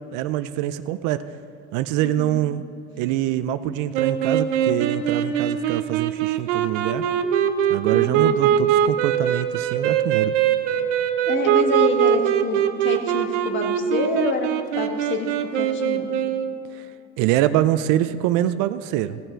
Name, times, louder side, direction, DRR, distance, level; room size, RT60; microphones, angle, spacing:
voice 1, 0.1-1.2 1.7-2.6 3.0-7.0 7.7-10.3 16.7-16.9 17.2-19.2, right 13 dB, 60° right, 12 dB, 0.6 m, -24 dB
voice 2, 2.0-2.5 7.9-8.5 11.2-14.5 14.8-16.1, left 3 dB, 35° left, 3 dB, 1.6 m, -27 dB
sound 1, 3.9-16.6, right 10 dB, 85° right, 0.9 m, -22 dB
17.0 x 6.6 x 4.5 m, 2.7 s
supercardioid pair, 120°, 35 cm